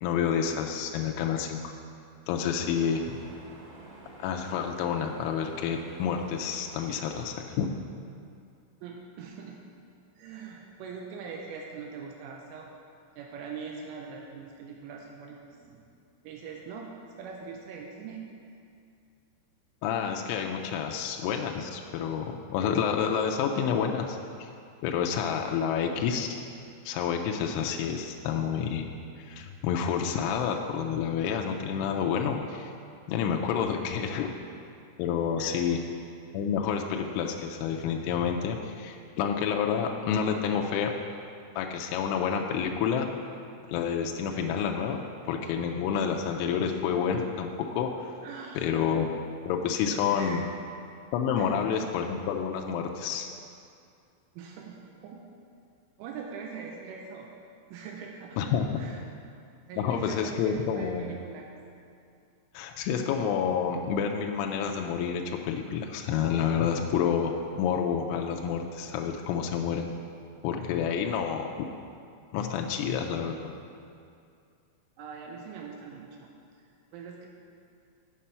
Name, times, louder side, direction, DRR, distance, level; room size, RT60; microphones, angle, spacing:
voice 1, 0.0-1.7 2.3-3.2 4.2-7.7 19.8-24.2 24.8-26.4 26.9-28.9 29.2-32.7 33.1-34.3 35.0-35.8 36.3-40.9 41.6-43.1 43.7-48.1 48.6-49.1 49.5-50.4 51.1-53.3 58.4-58.9 59.8-61.1 62.5-69.9 70.4-71.7 72.3-73.5, left 7 dB, 85° left, 2 dB, 2.8 m, -29 dB
sound 1, 2.3-7.3, right 2 dB, 55° right, 3.6 m, -49 dB
voice 2, 8.8-9.7 10.2-12.7 13.2-15.8 16.2-18.2 34.4-34.5 35.4-35.6 48.2-48.7 50.0-50.4 51.4-51.6 54.4-55.2 56.0-57.3 57.7-58.4 58.8-59.0 59.7-61.5 75.0-76.3 76.6-77.3, right 5 dB, 80° right, 0 dB, 3.0 m, -42 dB
7.4 x 6.7 x 5.6 m, 2.4 s
omnidirectional pair, 6.0 m